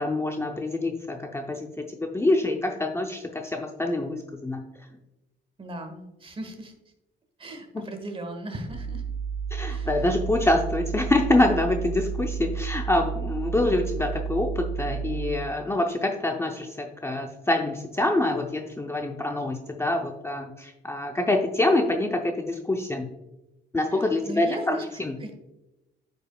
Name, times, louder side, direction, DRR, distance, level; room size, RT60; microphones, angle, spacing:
voice 1, 0.0-1.7 2.0-4.6 7.7-7.8 9.5-23.1 23.7-25.2, left 2 dB, 15° left, 3 dB, 0.5 m, -26 dB
voice 2, 5.6-6.7 7.4-9.0 9.7-10.0 23.9-24.8 25.2-25.4, right 1 dB, 25° right, 6 dB, 1.3 m, -37 dB
sound 1, 8.7-15.5, right 6 dB, 55° right, 1.5 m, -31 dB
8.6 x 5.3 x 2.3 m, 0.98 s
cardioid pair, 90°, 20 cm